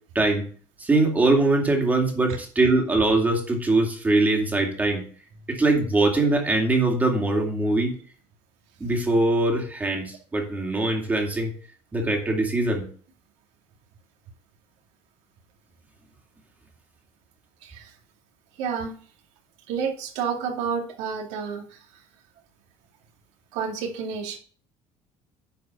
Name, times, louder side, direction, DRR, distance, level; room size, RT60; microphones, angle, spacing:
voice 1, 0.1-0.5 0.8-5.1 5.5-7.9 8.8-11.5 11.9-12.9, right 2 dB, 15° right, 1 dB, 2.4 m, -22 dB
voice 2, 17.6-17.9 18.6-18.9 19.7-21.8 23.5-24.4, right 6 dB, 85° right, 2 dB, 2.3 m, -30 dB
10.5 x 5.0 x 5.4 m, 0.43 s
cardioid pair, 160°, 11 cm